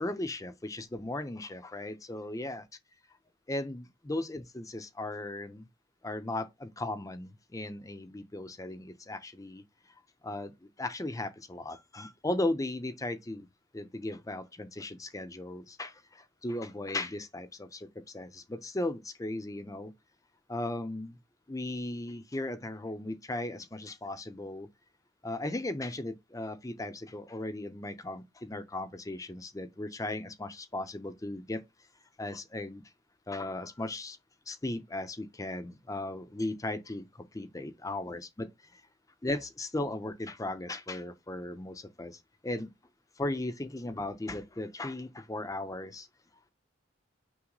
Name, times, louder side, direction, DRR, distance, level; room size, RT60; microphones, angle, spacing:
voice 1, 0.0-2.6 3.5-5.7 6.0-9.6 10.2-13.5 13.7-19.9 20.5-21.2 21.5-24.7 25.2-31.6 32.2-32.8 33.3-34.2 34.5-38.8 39.2-42.7 43.2-46.1, left 2 dB, 15° left, 0.6 m, -37 dB
5.9 x 2.1 x 3.9 m
head